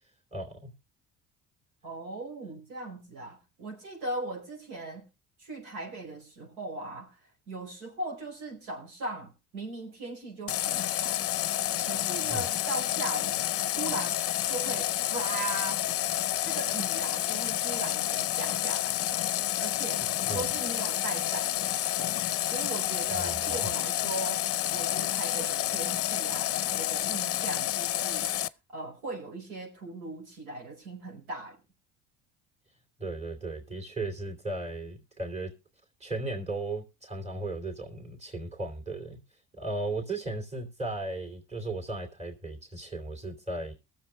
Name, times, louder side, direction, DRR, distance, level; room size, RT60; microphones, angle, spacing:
voice 1, 0.3-0.7 12.3-12.5 20.3-20.4 23.1-23.7 33.0-35.5 36.0-39.2 39.5-43.7, right 2 dB, 20° right, 2.8 m, -36 dB
voice 2, 1.8-5.0 5.4-7.2 7.5-11.2 11.9-13.5 13.8-14.2 14.5-15.9 16.4-20.0 20.3-22.2 22.5-24.4 24.7-28.3 28.7-31.6, right 2 dB, 85° right, 4.9 m, -38 dB
Water tap faucet, 10.5-28.5, left 13 dB, 45° left, 0.6 m, -29 dB
20.5 x 7.3 x 3.3 m
supercardioid pair, 90°, 33 cm